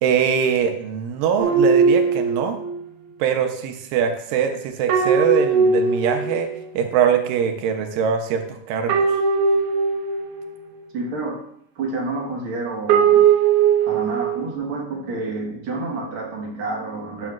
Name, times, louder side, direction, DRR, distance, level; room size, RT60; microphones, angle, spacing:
voice 1, 0.0-2.6 3.2-6.5 6.7-9.1, right 8 dB, 90° right, 5 dB, 2.5 m, -22 dB
sound 1, 1.4-2.8 4.9-6.7 8.9-10.6 12.9-14.5, right 6 dB, 75° right, 2.1 m, -19 dB
voice 2, 10.9-11.4 11.8-13.2 13.8-17.3, right 3 dB, 50° right, -1 dB, 1.8 m, -29 dB
12.0 x 6.9 x 2.4 m, 0.69 s
omnidirectional pair, 3.8 m